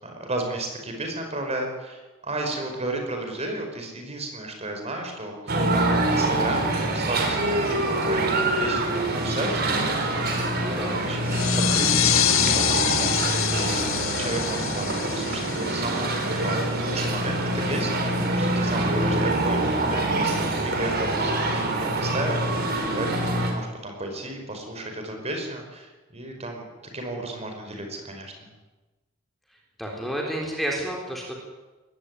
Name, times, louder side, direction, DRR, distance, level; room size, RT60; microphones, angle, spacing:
voice 1, 0.0-9.6 10.1-10.6 11.0-11.4 11.7-12.3 12.5-13.8 14.2-22.6 22.9-26.6 26.9-28.5, right 1 dB, 30° right, 3 dB, 5.2 m, -33 dB
sound 1, 5.5-23.5, right 2 dB, 50° right, 4.5 m, -25 dB
voice 2, 10.6-11.0 29.8-31.3, equal, ahead, -1 dB, 3.8 m, -30 dB
sound 2, 11.3-16.6, left 12 dB, 75° left, 1.0 m, -26 dB
20.5 x 16.5 x 9.9 m, 1.2 s
head